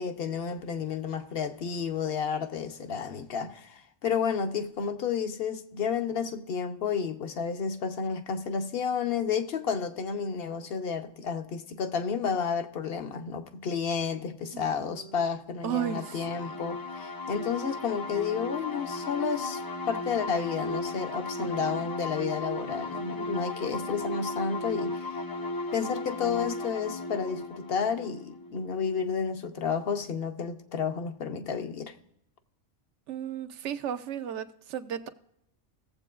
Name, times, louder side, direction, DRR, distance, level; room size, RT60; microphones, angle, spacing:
voice 1, 0.0-19.6 19.9-25.2 25.7-31.9, left 6 dB, 55° left, 0.9 m, -31 dB
voice 2, 14.5-15.2 15.6-16.6 21.4-21.8 33.1-35.1, right 9 dB, 70° right, 0.9 m, -35 dB
sound 1, 15.8-29.2, left 2 dB, 25° left, 0.4 m, -36 dB
17.5 x 7.6 x 2.4 m
omnidirectional pair, 1.3 m